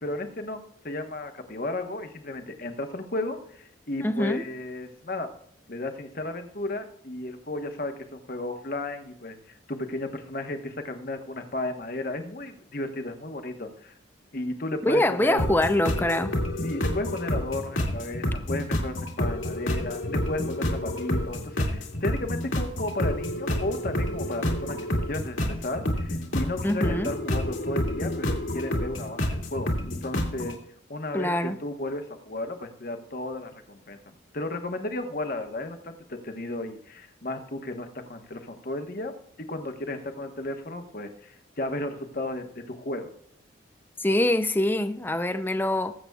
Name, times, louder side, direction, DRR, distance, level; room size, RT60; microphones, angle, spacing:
voice 1, 0.0-5.3 5.7-13.9 14.3-15.5 16.6-30.6 30.9-39.1 39.4-43.1, left 2 dB, 45° left, 6 dB, 1.2 m, -34 dB
voice 2, 4.0-4.4 14.8-16.3 26.6-27.1 31.1-31.6 44.0-45.9, left 1 dB, 10° left, 10 dB, 0.5 m, -24 dB
sound 1, 15.4-30.6, left 1 dB, 80° left, 2.2 m, -29 dB
20.0 x 7.8 x 2.3 m, 0.66 s
head